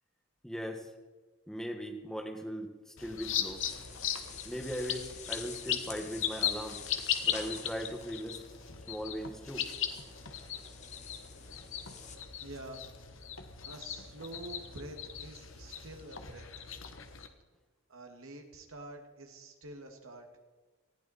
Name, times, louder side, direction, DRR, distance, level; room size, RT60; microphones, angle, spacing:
voice 1, 0.4-0.9 1.5-3.6 4.4-6.8 7.2-8.4 8.9-9.6, equal, ahead, 3 dB, 1.6 m, -39 dB
sound 1, 3.0-17.3, left 9 dB, 70° left, 1.3 m, -38 dB
sound 2, 3.6-12.2, left 6 dB, 35° left, 1.5 m, -49 dB
voice 2, 12.4-12.9 13.6-16.5 17.9-20.3, right 2 dB, 85° right, 3 dB, 2.1 m, -47 dB
19.5 x 15.0 x 4.3 m, 1.3 s
head